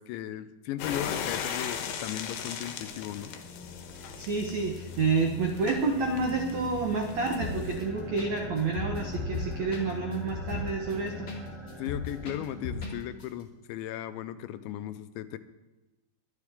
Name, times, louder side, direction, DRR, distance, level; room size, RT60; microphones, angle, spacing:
voice 1, 0.0-3.4 11.8-15.4, left 12 dB, 85° left, 11 dB, 3.0 m, -36 dB
sound 1, 0.8-7.8, left 7 dB, 70° left, 3.0 m, -38 dB
sound 2, 2.6-13.1, left 3 dB, 15° left, 2.4 m, -43 dB
voice 2, 4.2-11.3, right 4 dB, 80° right, 2 dB, 1.6 m, -29 dB
sound 3, 7.4-7.8 8.2-8.3 8.6-11.4 11.7-12.9 13.2-13.3, left 3 dB, 30° left, 2.1 m, -36 dB
23.0 x 11.0 x 3.6 m, 1.1 s
omnidirectional pair, 5.2 m